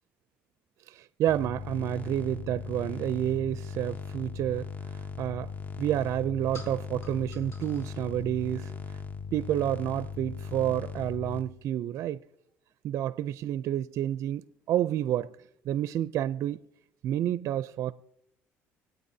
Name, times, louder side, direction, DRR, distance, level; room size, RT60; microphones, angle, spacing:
voice 1, 0.9-5.5 5.8-9.0 9.3-12.2 12.8-14.4 14.7-15.3 15.7-16.6 17.0-17.9, right 11 dB, 60° right, 0.4 m, -29 dB
sound 1, 1.3-11.4, left 5 dB, 30° left, 1.0 m, -39 dB
sound 2, 5.0-10.5, left 1 dB, 55° left, 4.5 m, -55 dB
26.0 x 9.2 x 2.7 m
supercardioid pair, 85°, 6 cm